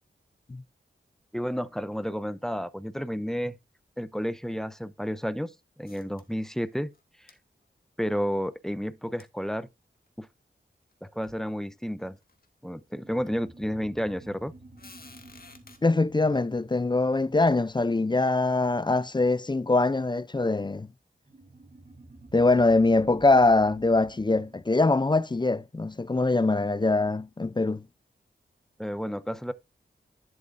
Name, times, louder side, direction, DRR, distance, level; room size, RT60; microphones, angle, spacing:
voice 1, 1.3-3.6 4.0-5.5 5.8-6.9 8.0-9.7 10.2-10.3 11.0-12.2 12.6-14.5 28.8-29.5, equal, ahead, 0.8 m, -31 dB
sound 1, 5.9-6.7 6.9-7.0 7.3-7.4 9.2-9.3 10.1-10.2 10.9-11.0 11.2-11.5 12.1-12.5 13.3-13.4 14.8-15.8, left 3 dB, 50° left, 2.0 m, -52 dB
sound 2, 12.9-17.9 21.2-26.2, right 2 dB, 40° right, 3.5 m, -52 dB
voice 2, 15.8-20.9 22.3-27.8, left 2 dB, 20° left, 0.5 m, -23 dB
11.0 x 7.6 x 2.6 m
cardioid pair, 50°, 20 cm